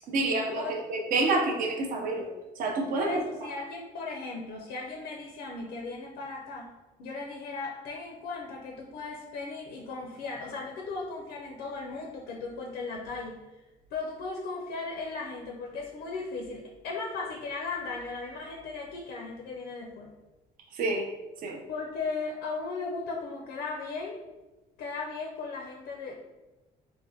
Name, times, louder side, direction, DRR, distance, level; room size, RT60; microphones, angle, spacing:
voice 1, 0.1-2.3 2.6-3.2 20.7-21.1 21.4-21.6, right 2 dB, 55° right, 1 dB, 0.5 m, -28 dB
voice 2, 2.9-13.4 13.9-20.2 21.7-24.2 24.8-26.2, left 3 dB, 75° left, 0 dB, 0.4 m, -37 dB
3.3 x 2.1 x 2.6 m, 1.1 s
cardioid pair, 110°, 17 cm